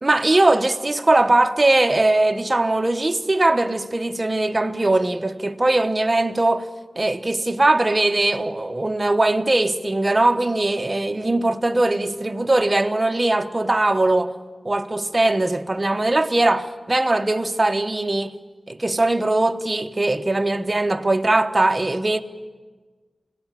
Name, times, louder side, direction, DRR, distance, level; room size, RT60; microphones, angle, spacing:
voice 1, 0.0-6.7 7.0-14.3 14.6-18.3 18.7-22.2, right 2 dB, 30° right, 1.1 m, -20 dB
27.0 x 18.0 x 7.5 m
wide cardioid pair, 90°, 0 cm